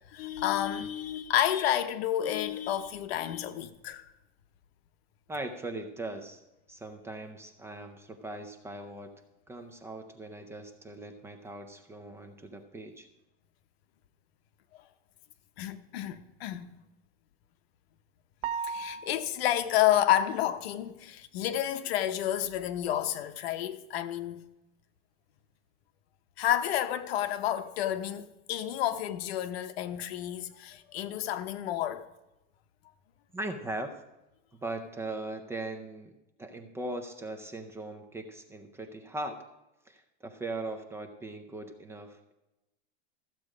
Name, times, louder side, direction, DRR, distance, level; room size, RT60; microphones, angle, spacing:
voice 1, 0.1-4.1 15.6-16.7 18.6-24.4 26.4-32.1, left 12 dB, 75° left, 0.9 m, -30 dB
voice 2, 5.3-6.4 6.7-9.1 9.5-13.1 33.3-33.9 34.5-36.1 36.4-39.4 39.9-42.3, right 2 dB, 10° right, 0.4 m, -39 dB
sound 1, 18.4-19.5, right 6 dB, 60° right, 0.7 m, -36 dB
14.0 x 7.6 x 4.9 m
supercardioid pair, 160°, 31 cm